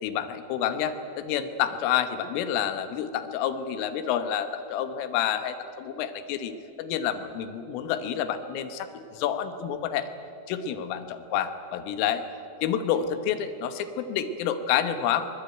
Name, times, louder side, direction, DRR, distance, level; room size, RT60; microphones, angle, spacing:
voice 1, 0.0-6.5 6.8-10.1 10.5-12.2 12.6-15.3, left 9 dB, 85° left, 9 dB, 3.8 m, -29 dB
23.5 x 20.5 x 9.1 m, 2.5 s
omnidirectional pair, 5.7 m